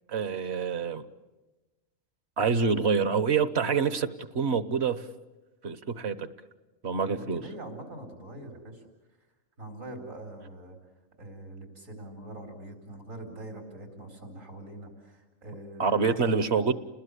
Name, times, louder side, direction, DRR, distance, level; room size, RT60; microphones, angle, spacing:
voice 1, 0.1-1.0 2.4-4.1 4.3-5.0 5.6-6.3 6.8-7.4 15.8-16.7, right 5 dB, 55° right, 13 dB, 1.3 m, -26 dB
voice 2, 7.0-8.8 9.6-10.8 11.2-16.7, right 1 dB, 85° right, 3 dB, 4.6 m, -43 dB
29.5 x 20.5 x 8.3 m, 1.1 s
omnidirectional pair, 1.3 m